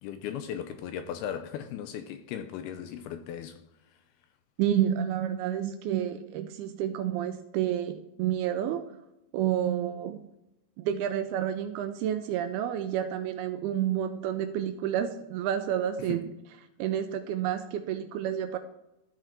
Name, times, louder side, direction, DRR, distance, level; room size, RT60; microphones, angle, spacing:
voice 1, 0.0-3.6 16.0-16.3, left 9 dB, 80° left, 2.3 m, -37 dB
voice 2, 4.6-8.8 9.3-10.2 10.8-16.2 16.8-18.6, right 10 dB, 85° right, 2.3 m, -29 dB
13.5 x 4.9 x 4.4 m
omnidirectional pair, 4.8 m